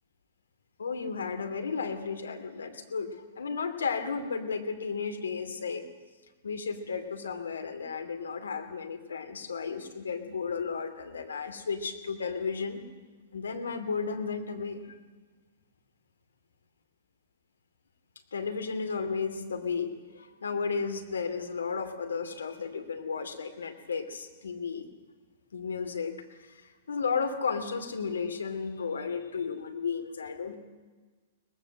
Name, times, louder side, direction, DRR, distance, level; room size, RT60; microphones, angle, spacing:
voice 1, 0.8-5.9 6.4-12.8 13.3-15.0 18.3-24.8 25.5-30.6, left 5 dB, 75° left, 6 dB, 2.6 m, -34 dB
23.0 x 19.5 x 7.5 m, 1.4 s
figure-of-eight pair, 110°, 0 cm